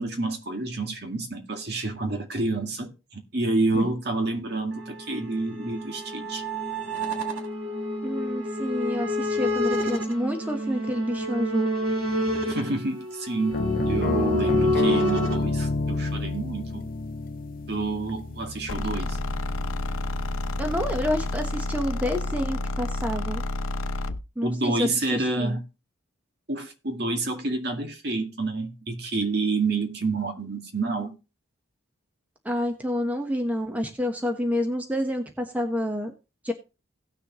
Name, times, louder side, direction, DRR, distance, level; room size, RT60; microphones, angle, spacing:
voice 1, 0.0-6.4 12.5-16.9 17.7-19.2 24.4-25.7 26.5-31.2, right 3 dB, 55° right, 2.0 m, -29 dB
sound 1, 4.7-15.4, equal, 75° right, 1.8 m, -29 dB
voice 2, 8.0-11.7 20.6-23.4 24.4-25.6 32.4-36.1 36.4-36.5, left 1 dB, 5° right, 1.2 m, -28 dB
sound 2, 13.5-21.4, left 2 dB, 45° left, 0.6 m, -30 dB
sound 3, 18.7-24.2, left 2 dB, 90° left, 0.8 m, -30 dB
17.5 x 6.7 x 3.1 m
head